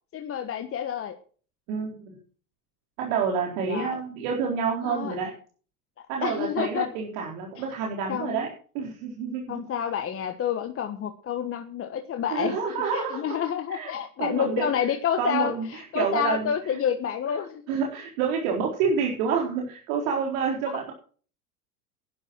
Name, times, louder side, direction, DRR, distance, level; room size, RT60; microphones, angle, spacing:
voice 1, 0.1-1.1 3.7-4.0 4.8-5.1 6.2-6.9 8.1-8.5 9.5-12.6 12.9-17.6 20.7-20.8, left 9 dB, 30° left, 6 dB, 1.4 m, -29 dB
voice 2, 1.7-2.2 3.0-5.3 6.1-8.5 8.7-9.6 12.3-13.2 13.7-13.9 14.2-14.7 15.2-16.8 17.7-20.9, right 6 dB, 60° right, 0 dB, 4.3 m, -28 dB
12.0 x 11.0 x 6.3 m, 0.42 s
hypercardioid pair, 95°, 46 cm